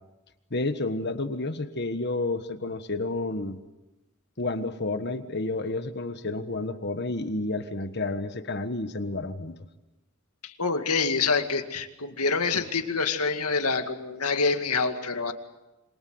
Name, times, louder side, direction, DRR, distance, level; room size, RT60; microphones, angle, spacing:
voice 1, 0.5-3.6 4.4-9.5, left 2 dB, 50° left, 9 dB, 1.4 m, -30 dB
voice 2, 10.4-15.3, left 4 dB, 85° left, 6 dB, 2.2 m, -26 dB
27.5 x 25.5 x 7.9 m, 1.0 s
head